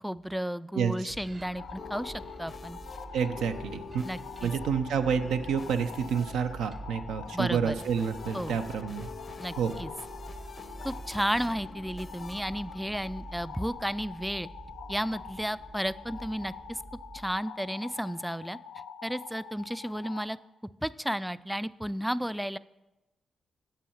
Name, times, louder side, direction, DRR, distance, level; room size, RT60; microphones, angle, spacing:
voice 1, 0.0-2.8 4.0-4.5 7.3-7.8 8.3-8.6 9.4-9.9 10.8-14.5 14.9-16.8 17.1-18.6 19.0-20.4 20.8-22.6, equal, 5° right, 17 dB, 0.3 m, -33 dB
voice 2, 0.8-1.1 3.1-4.0 4.4-9.1 9.6-9.8, right 6 dB, 85° right, 7 dB, 0.6 m, -29 dB
sound 1, 1.0-13.7, left 4 dB, 45° left, 0.7 m, -48 dB
sound 2, 1.1-17.4, right 2 dB, 45° right, 0.8 m, -47 dB
sound 3, 1.5-20.3, left 6 dB, 90° left, 0.6 m, -46 dB
7.0 x 5.7 x 7.2 m, 1.0 s
supercardioid pair, 50°, 0 cm